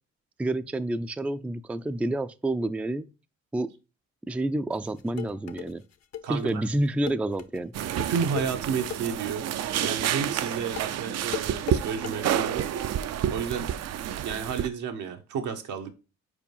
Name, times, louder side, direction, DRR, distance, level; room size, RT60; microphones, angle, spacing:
voice 1, 0.4-3.1 3.5-3.7 4.3-5.8 6.3-7.7, right 1 dB, 5° right, 0.3 m, -29 dB
sound 1, 4.7-12.2, left 10 dB, 55° left, 0.7 m, -38 dB
voice 2, 6.2-6.6 8.0-9.5 9.8-12.7 13.3-13.7 14.2-15.9, right 6 dB, 85° right, 1.2 m, -31 dB
sound 2, 7.7-14.7, right 10 dB, 60° right, 0.5 m, -29 dB
4.9 x 4.7 x 5.4 m
cardioid pair, 90°, 30 cm